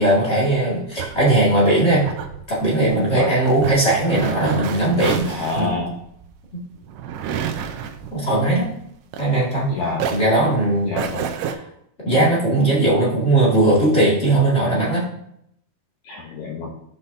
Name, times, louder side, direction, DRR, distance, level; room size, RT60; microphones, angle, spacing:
voice 1, 0.0-2.0 2.5-5.7 6.5-6.6 8.1-8.7 9.2-9.7 10.1-10.9 12.0-15.1, right 2 dB, 30° left, -6 dB, 1.3 m, -18 dB
sound 1, 0.5-9.6 9.9-11.5, right 8 dB, 85° right, 2.8 m, -30 dB
voice 2, 5.3-5.9 9.7-10.1 10.8-11.3 16.0-16.7, left 3 dB, 75° left, -1 dB, 1.7 m, -27 dB
13.5 x 5.6 x 2.7 m, 0.73 s
omnidirectional pair, 4.5 m